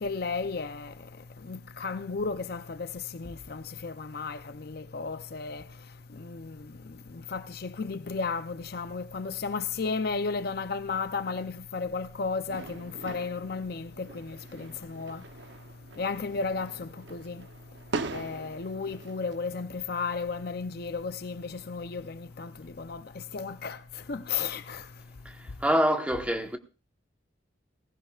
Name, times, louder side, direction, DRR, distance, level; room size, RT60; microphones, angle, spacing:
voice 1, 0.0-0.9 1.5-5.6 6.2-6.6 7.3-15.2 16.0-17.4 18.1-23.0 23.3-23.8 24.1-24.8, left 4 dB, 50° left, 0.6 m, -34 dB
sound 1, 12.5-19.3, right 3 dB, 70° right, 0.8 m, -41 dB
voice 2, 25.2-26.6, equal, 5° right, 1.2 m, -26 dB
19.0 x 16.0 x 2.4 m
head